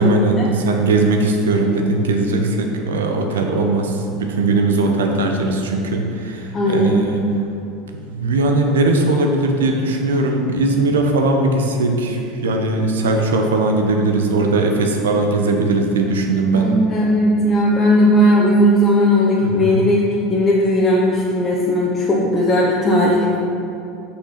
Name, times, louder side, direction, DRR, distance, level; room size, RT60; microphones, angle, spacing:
voice 1, 0.0-7.3 7.9-16.7 19.4-19.9, right 2 dB, 80° right, 3 dB, 0.9 m, -19 dB
voice 2, 6.5-7.0 16.5-20.0 20.3-23.4, equal, 25° left, -5 dB, 1.2 m, -16 dB
6.7 x 5.9 x 5.8 m, 2.7 s
hypercardioid pair, 75°, 0 cm